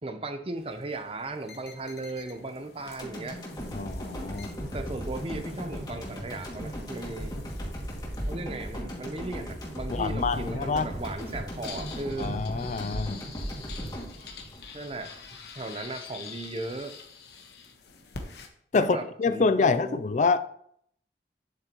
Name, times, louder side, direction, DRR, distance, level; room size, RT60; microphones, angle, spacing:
voice 1, 0.0-3.4 4.6-7.4 8.3-12.4 14.7-15.1 15.6-16.9 18.7-20.0, right 2 dB, 30° right, 0.7 m, -36 dB
sound 1, 0.6-18.5, left 5 dB, 65° left, 1.3 m, -48 dB
sound 2, 3.0-15.2 15.6-15.7, equal, 20° left, 2.3 m, -37 dB
voice 2, 3.7-4.5 9.9-10.9 12.2-13.2 18.7-20.4, left 4 dB, 40° left, 0.4 m, -26 dB
10.0 x 7.9 x 3.0 m
head